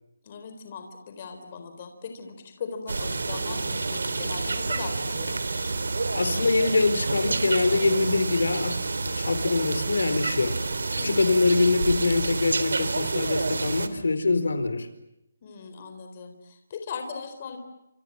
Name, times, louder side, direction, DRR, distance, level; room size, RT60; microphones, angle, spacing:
voice 1, 0.2-5.4 11.0-11.4 15.4-17.6, left 5 dB, 25° left, 3.9 m, -39 dB
sound 1, 2.9-13.9, right 3 dB, 80° right, 3.4 m, -29 dB
voice 2, 6.1-10.6 11.0-14.9, left 3 dB, 85° left, 4.5 m, -24 dB
28.5 x 28.0 x 7.3 m
hypercardioid pair, 180°, 0 cm